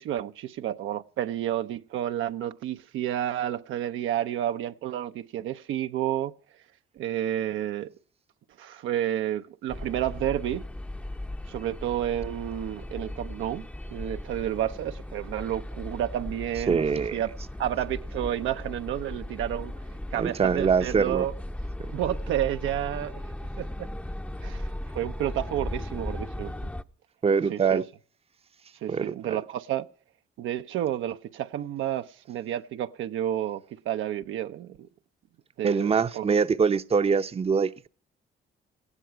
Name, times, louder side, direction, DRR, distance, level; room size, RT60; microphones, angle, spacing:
voice 1, 0.0-6.3 7.0-7.9 8.6-10.6 11.5-16.8 17.1-17.3 17.6-19.7 20.1-21.3 21.9-23.2 23.6-23.9 24.4-24.6 24.9-26.7 27.5-27.8 28.8-29.9 30.4-34.9 35.6-36.3, right 11 dB, 85° right, 0.8 m, -30 dB
sound 1, 9.7-26.8, left 1 dB, 5° left, 0.6 m, -37 dB
voice 2, 16.7-17.2 20.1-21.2 27.2-27.8 28.9-29.4 35.6-37.9, right 5 dB, 30° right, 0.7 m, -24 dB
18.5 x 14.5 x 4.6 m
cardioid pair, 90°, 20 cm